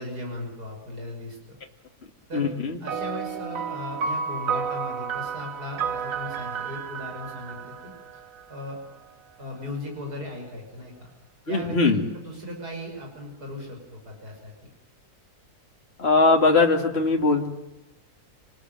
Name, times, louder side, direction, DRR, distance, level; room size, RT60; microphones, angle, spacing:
voice 1, 0.0-1.6 2.3-2.5 2.8-7.9 8.5-8.8 9.4-11.1 11.5-14.5, left 1 dB, 85° right, 1 dB, 6.7 m, -37 dB
voice 2, 2.3-2.8 11.5-12.0 16.0-17.5, left 3 dB, 40° left, 2 dB, 2.7 m, -20 dB
sound 1, 2.9-8.6, right 6 dB, 60° right, 1.6 m, -31 dB
29.0 x 20.0 x 9.4 m, 0.97 s
omnidirectional pair, 1.6 m